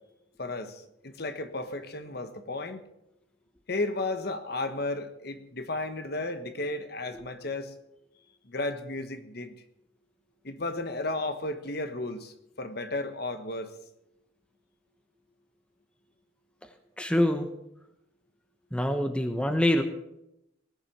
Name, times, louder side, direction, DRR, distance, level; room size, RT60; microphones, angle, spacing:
voice 1, 0.4-2.8 3.7-7.7 8.4-9.5 10.4-13.7, left 2 dB, 50° left, 9 dB, 1.3 m, -34 dB
voice 2, 17.0-17.5 18.7-19.8, left 1 dB, 5° left, 7 dB, 1.0 m, -25 dB
19.5 x 7.3 x 7.3 m, 0.83 s
head